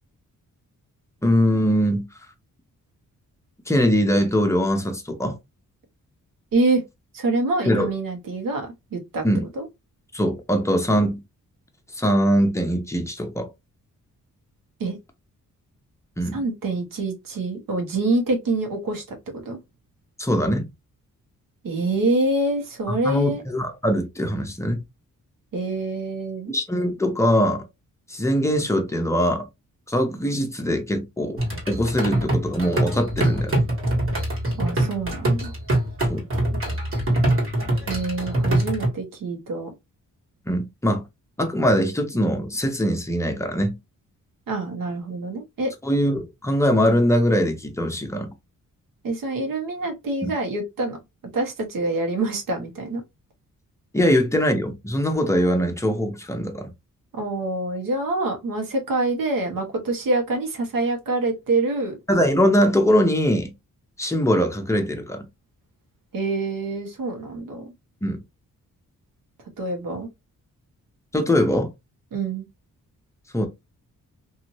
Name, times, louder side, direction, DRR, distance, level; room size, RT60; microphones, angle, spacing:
voice 1, 1.2-2.1 3.7-5.4 7.6-7.9 9.2-9.5 10.1-11.2 12.0-13.5 16.2-16.4 20.2-20.7 22.9-24.8 26.5-27.6 28.1-29.5 29.9-31.4 31.7-33.7 36.1-36.3 40.5-41.0 41.4-43.8 45.8-48.3 50.2-50.3 53.9-56.7 62.1-63.5 64.0-65.3 68.0-68.2 71.1-71.7 73.3-73.5, equal, 10° left, 0.7 m, -22 dB
voice 2, 6.5-6.8 7.1-9.2 9.6-9.7 14.8-15.0 16.3-19.6 21.6-23.4 25.5-26.6 34.6-35.5 37.9-39.7 44.5-45.7 49.0-51.0 51.3-53.0 57.1-61.9 66.1-67.7 69.6-70.1 72.1-72.5, right 2 dB, 85° right, 1.2 m, -26 dB
sound 1, 31.4-38.9, right 1 dB, 40° right, 1.6 m, -24 dB
2.7 x 2.6 x 2.9 m
wide cardioid pair, 125°, 33 cm